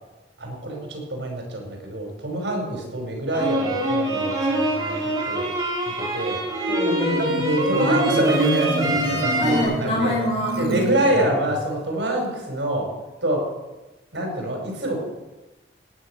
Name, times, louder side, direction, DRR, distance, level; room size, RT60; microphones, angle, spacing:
voice 1, 0.4-4.9 5.3-5.5 6.0-6.4 7.4-10.2 10.6-12.9 13.2-13.5 14.1-15.0, right 1 dB, 85° right, 1 dB, 5.4 m, -26 dB
sound 1, 3.3-9.6, right 1 dB, 20° right, 3.0 m, -25 dB
Marimba xylophone, 6.5-11.6, equal, 60° right, 1.7 m, -27 dB
voice 2, 6.7-7.3 9.4-10.9, equal, 30° left, -4 dB, 4.3 m, -26 dB
18.0 x 9.5 x 6.4 m, 1.1 s
head